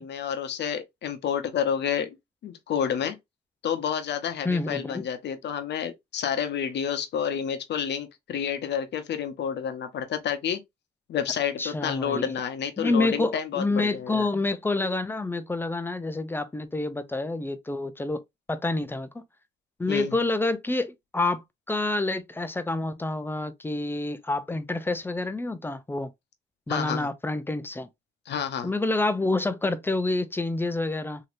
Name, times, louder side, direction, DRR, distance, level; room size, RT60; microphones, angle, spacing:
voice 1, 0.0-2.2 2.4-3.2 3.6-10.6 11.1-14.3 19.9-20.2 26.7-27.1 28.3-28.7, left 8 dB, 60° left, 0.8 m, -29 dB
voice 2, 4.4-5.0 11.6-12.3 12.8-18.2 18.5-19.1 19.8-26.1 26.7-27.9 28.6-31.2, left 2 dB, 10° left, 0.5 m, -28 dB
3.1 x 2.8 x 2.5 m
cardioid pair, 90°, 20 cm